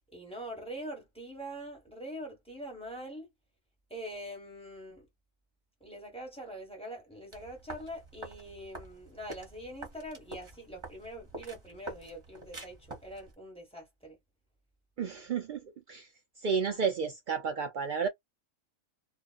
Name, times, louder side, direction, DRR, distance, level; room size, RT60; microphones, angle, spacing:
voice 1, 0.1-3.3 3.9-5.0 5.8-14.2, equal, 5° left, 1.1 m, -43 dB
sound 1, 7.3-13.3, right 2 dB, 25° right, 1.0 m, -47 dB
voice 2, 15.0-15.6 15.9-16.1 16.4-18.1, right 6 dB, 80° right, 0.4 m, -31 dB
2.5 x 2.3 x 2.3 m
omnidirectional pair, 1.4 m